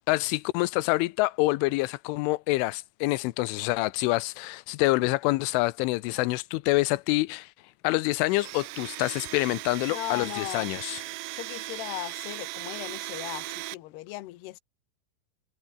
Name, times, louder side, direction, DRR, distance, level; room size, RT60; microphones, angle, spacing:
voice 1, 0.1-7.5 7.8-11.0, left 21 dB, 90° left, 3.2 m, -26 dB
Domestic sounds home sounds, 8.2-13.7, right 21 dB, 80° right, 2.6 m, -38 dB
voice 2, 9.9-10.8 11.3-14.6, left 18 dB, 70° left, 3.0 m, -37 dB
omnidirectional pair, 5.5 m